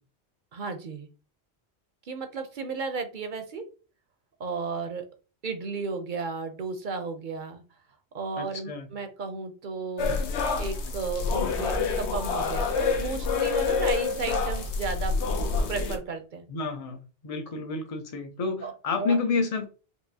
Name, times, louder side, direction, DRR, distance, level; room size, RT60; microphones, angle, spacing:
voice 1, 0.5-1.1 2.1-3.6 4.4-5.1 5.4-7.6 8.1-10.2 10.6-15.2 15.7-16.5 18.6-18.7 19.0-19.2, right 4 dB, 55° right, 0.7 m, -34 dB
voice 2, 8.4-8.9 16.5-19.7, left 4 dB, 40° left, 0.7 m, -30 dB
sound 1, 10.0-16.0, left 4 dB, 85° left, 1.0 m, -27 dB
4.5 x 2.7 x 2.7 m
omnidirectional pair, 1.1 m